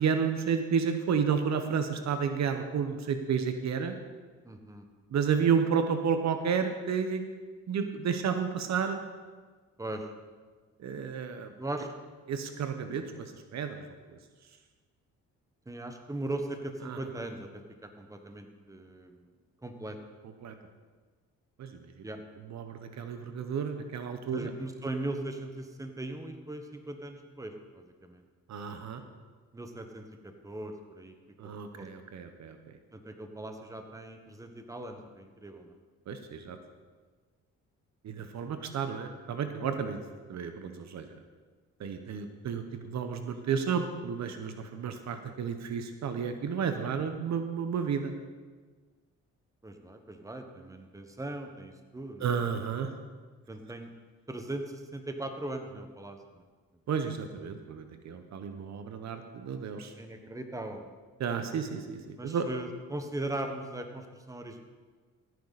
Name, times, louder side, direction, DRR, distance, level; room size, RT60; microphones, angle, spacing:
voice 1, 0.0-3.9 5.1-7.2 7.7-9.0 10.8-11.5 12.3-13.8 16.8-17.0 20.4-20.5 21.6-21.8 22.5-24.5 28.5-29.0 31.4-32.8 36.1-36.6 38.0-40.0 40.3-41.1 41.8-48.1 52.2-52.9 56.9-59.9 61.2-62.5, right 6 dB, 60° right, 7 dB, 1.1 m, -31 dB
voice 2, 4.4-4.9 9.8-10.1 11.6-11.9 15.6-19.3 19.6-20.0 22.0-22.2 24.3-28.2 29.5-31.1 31.4-31.9 32.9-35.7 49.6-52.3 53.5-53.9 54.3-56.4 57.0-57.1 60.0-60.9 62.2-64.6, right 2 dB, 10° right, 5 dB, 1.3 m, -39 dB
15.5 x 9.4 x 4.2 m, 1.4 s
cardioid pair, 90°, 30 cm